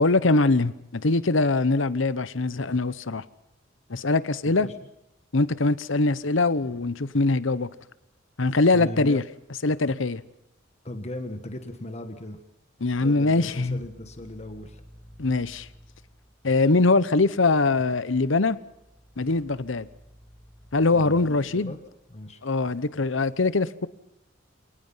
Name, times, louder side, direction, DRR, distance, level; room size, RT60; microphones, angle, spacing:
voice 1, 0.0-3.2 3.9-4.7 5.3-7.7 8.4-9.2 9.6-10.2 12.8-13.8 15.2-15.7 16.4-18.6 19.2-19.9 20.7-21.7 22.4-23.9, left 3 dB, 70° left, 0.9 m, -22 dB
voice 2, 8.7-9.2 10.8-12.4 13.0-14.8 20.9-21.8 22.1-22.4, left 1 dB, 35° left, 1.6 m, -37 dB
sound 1, 13.2-16.9 18.2-22.6, equal, 5° left, 2.0 m, -53 dB
28.0 x 18.5 x 5.7 m
head